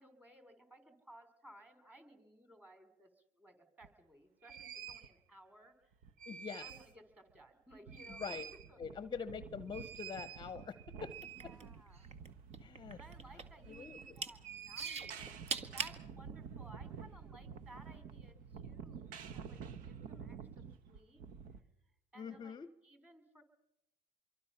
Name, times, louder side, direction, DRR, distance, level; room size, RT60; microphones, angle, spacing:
voice 1, 0.0-6.1 6.6-8.4 8.7-8.8 11.2-12.1 12.9-15.3 15.7-21.2 22.1-23.4, right 1 dB, 10° right, 8 dB, 3.8 m, -59 dB
sound 1, 3.8-3.9 4.4-5.1 5.9-6.9 7.3-7.4 7.7-21.6, right 7 dB, 65° right, 1.2 m, -49 dB
voice 2, 6.3-6.7 8.1-8.4 8.8-11.1 11.4-11.5 12.6-13.0 13.7-14.2 22.2-22.7, left 6 dB, 30° left, 14 dB, 0.8 m, -44 dB
sound 2, 11.1-12.3 12.5-13.6 14.0-14.3 14.8-16.0 16.7-16.8, right 4 dB, 45° right, 1.7 m, -40 dB
26.0 x 23.5 x 5.7 m, 0.86 s
hypercardioid pair, 80°, 15 cm